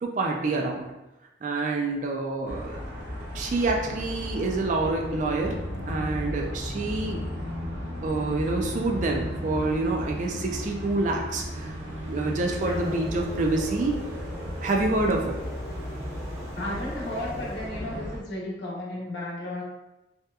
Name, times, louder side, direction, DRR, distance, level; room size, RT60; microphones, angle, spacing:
voice 1, 0.0-0.9 1.4-2.8 3.3-5.6 5.9-7.2 8.0-11.7 12.1-14.0 14.6-15.4, right 2 dB, 45° right, 1 dB, 0.3 m, -27 dB
sound 1, 2.5-18.2, equal, 85° right, 0.6 m, -35 dB
sound 2, 12.5-18.1, right 1 dB, 5° left, 1.0 m, -42 dB
voice 2, 12.6-13.0 16.5-19.6, left 1 dB, 75° left, -4 dB, 0.8 m, -34 dB
2.8 x 2.2 x 2.3 m, 0.96 s
head